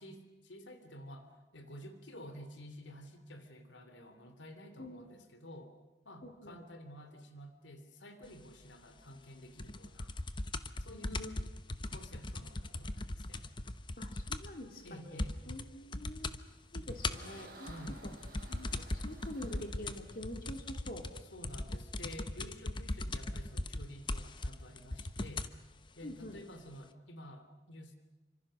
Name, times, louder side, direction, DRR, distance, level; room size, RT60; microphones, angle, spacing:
voice 1, 0.0-5.7 6.0-10.1 10.8-11.5 11.8-13.5 14.8-15.4 17.6-18.0 21.3-25.5 25.9-27.9, equal, 90° left, 8 dB, 3.0 m, -51 dB
voice 2, 6.2-6.6 10.9-11.3 14.0-16.4 16.7-17.7 18.0-18.1 18.5-21.1 26.0-26.4, left 1 dB, 50° left, 4 dB, 2.9 m, -46 dB
sound 1, 9.6-14.6 14.9-15.0 15.2-15.6 15.9-16.4 16.7-25.6 26.4-26.5, left 2 dB, 25° left, 0.9 m, -39 dB
sound 2, 16.4-21.1, right 2 dB, 50° right, 5.5 m, -56 dB
28.5 x 25.5 x 6.4 m, 1.1 s
head